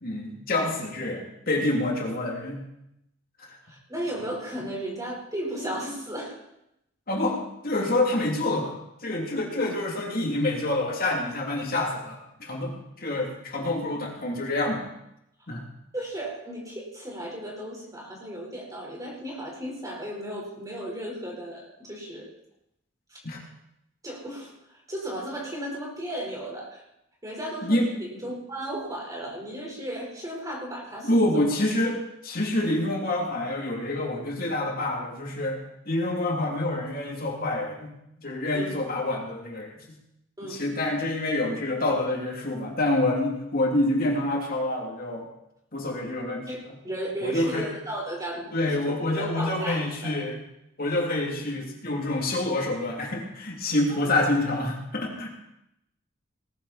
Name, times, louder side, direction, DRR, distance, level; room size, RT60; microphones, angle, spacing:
voice 1, 0.0-2.6 3.4-3.6 7.1-8.8 9.0-14.8 15.5-15.6 23.2-23.4 27.6-27.9 31.0-35.6 35.8-37.9 38.2-39.8 40.4-45.3 45.7-46.8 47.2-47.7 48.5-50.4 50.8-55.3, left 1 dB, 45° left, 0 dB, 3.1 m, -27 dB
voice 2, 3.6-6.4 15.9-22.3 23.1-23.2 24.0-26.8 27.2-31.3 38.5-38.8 40.4-40.6 46.5-50.3 54.0-54.1, right 1 dB, 20° right, -2 dB, 4.7 m, -35 dB
19.0 x 14.0 x 4.3 m, 0.82 s
head